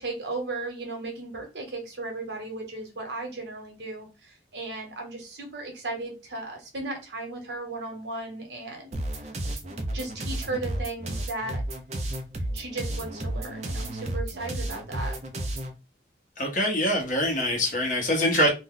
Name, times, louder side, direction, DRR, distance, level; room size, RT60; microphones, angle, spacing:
voice 1, 0.0-9.0 9.7-11.6 12.5-15.2, right 2 dB, 70° right, 1.0 m, -36 dB
sound 1, 8.9-15.7, right 1 dB, 40° right, 0.5 m, -32 dB
voice 2, 16.4-18.5, left 1 dB, 45° left, 1.0 m, -24 dB
2.6 x 2.2 x 3.7 m
head